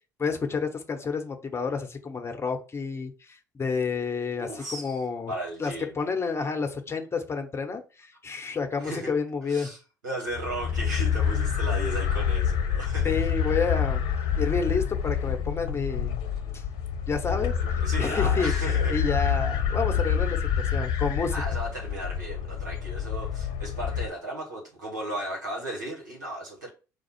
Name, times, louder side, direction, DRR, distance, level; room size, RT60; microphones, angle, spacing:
voice 1, 0.2-5.3 5.6-9.7 13.0-14.0 14.4-16.2 17.1-17.5 18.0-20.4 20.7-21.3, left 5 dB, 25° left, 1.0 m, -29 dB
voice 2, 4.4-5.0 5.3-6.0 8.8-9.1 9.5-13.3 17.4-19.0 21.3-26.7, right 1 dB, 85° right, 1.5 m, -35 dB
sound 1, 10.3-24.1, left 7 dB, 60° left, 0.8 m, -27 dB
5.0 x 2.3 x 4.5 m
figure-of-eight pair, 55°, 10 cm